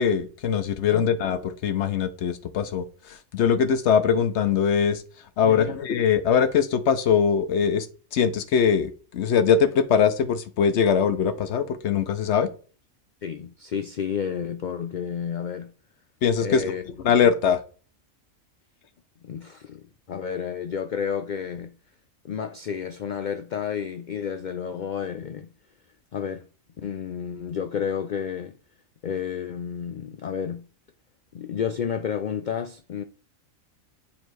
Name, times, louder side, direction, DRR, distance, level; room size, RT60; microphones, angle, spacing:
voice 1, 0.0-2.8 3.3-5.0 5.4-7.9 8.1-12.5 16.2-16.6 17.0-17.6, left 7 dB, 65° left, 0.9 m, -22 dB
voice 2, 5.4-5.8 13.2-15.7 16.4-17.3 19.2-21.7 22.2-25.5 26.1-26.5 26.8-28.6 29.0-30.7 31.3-33.0, left 7 dB, 90° left, 0.4 m, -31 dB
7.2 x 3.2 x 4.6 m
omnidirectional pair, 1.4 m